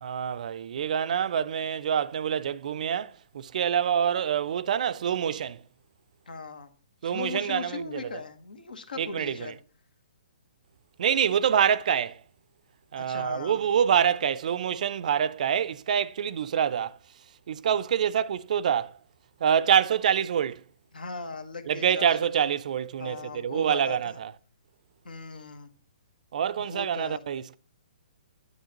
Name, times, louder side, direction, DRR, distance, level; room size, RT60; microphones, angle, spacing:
voice 1, 0.0-5.6 7.0-8.1 9.0-9.5 11.0-12.2 12.9-17.0 17.5-19.0 19.4-20.6 21.7-24.3 26.3-27.6, right 8 dB, 60° right, 0.4 m, -26 dB
voice 2, 6.3-6.7 7.0-9.6 13.0-13.6 20.9-22.1 23.0-24.2 25.0-25.7 26.6-27.2, left 4 dB, 90° left, 1.3 m, -38 dB
9.5 x 8.0 x 2.9 m
hypercardioid pair, 145°, 5 cm